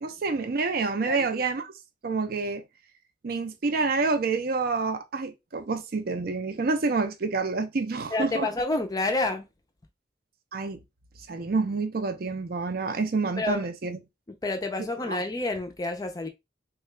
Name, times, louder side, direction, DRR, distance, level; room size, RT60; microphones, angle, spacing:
voice 1, 0.0-1.7 2.0-2.6 3.2-8.5 10.5-10.8 11.3-14.0 15.0-15.2, right 4 dB, 55° right, 0.5 m, -28 dB
voice 2, 8.1-9.4 13.4-13.7 14.4-16.3, left 2 dB, 20° left, 0.4 m, -28 dB
3.6 x 2.2 x 3.1 m
head